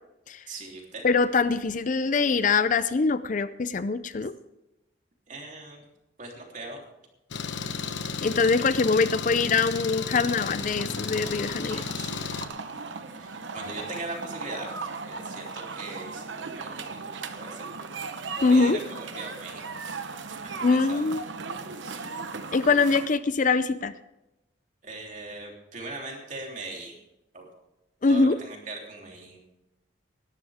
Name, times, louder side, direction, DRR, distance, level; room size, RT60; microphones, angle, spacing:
voice 1, 0.5-1.0 5.3-5.8 6.2-6.8 12.0-12.2 13.1-17.0 17.3-17.9 18.4-20.0 20.4-21.0 21.8-22.1 24.8-27.0 27.3-27.5 28.1-29.4, right 2 dB, 40° right, -1 dB, 3.3 m, -40 dB
voice 2, 1.0-4.3 8.2-11.8 18.4-18.8 20.6-21.2 22.5-23.9 28.0-28.4, left 4 dB, 40° left, 14 dB, 0.5 m, -23 dB
Engine, 7.3-12.5, left 5 dB, 70° left, 1.0 m, -33 dB
sound 1, 10.4-23.1, right 4 dB, 75° right, 1.0 m, -38 dB
19.0 x 12.5 x 3.6 m, 0.92 s
head